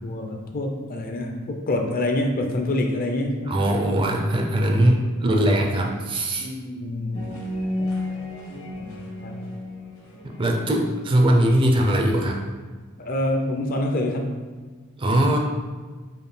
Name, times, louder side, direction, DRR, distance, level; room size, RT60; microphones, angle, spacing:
voice 1, 0.0-3.6 6.4-7.3 7.8-8.2 8.8-9.5 13.0-14.4, left 1 dB, 40° left, 3 dB, 0.4 m, -27 dB
voice 2, 3.5-6.5 10.2-12.4 15.0-15.4, right 1 dB, 25° right, 1 dB, 0.4 m, -21 dB
sound 1, 7.1-12.0, left 1 dB, 65° left, 1.0 m, -32 dB
4.9 x 2.4 x 3.2 m, 1.4 s
head